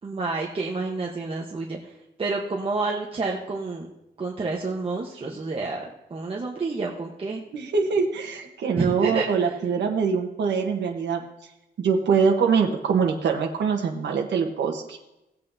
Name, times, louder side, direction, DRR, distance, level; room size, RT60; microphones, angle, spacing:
voice 1, 0.0-1.9 2.2-3.9 4.2-7.4 8.8-9.5, right 3 dB, 30° right, -1 dB, 1.0 m, -29 dB
voice 2, 7.5-11.2 11.8-15.0, right 5 dB, 85° right, 2 dB, 1.1 m, -23 dB
17.5 x 8.3 x 2.7 m, 0.91 s
wide cardioid pair, 135°, 18 cm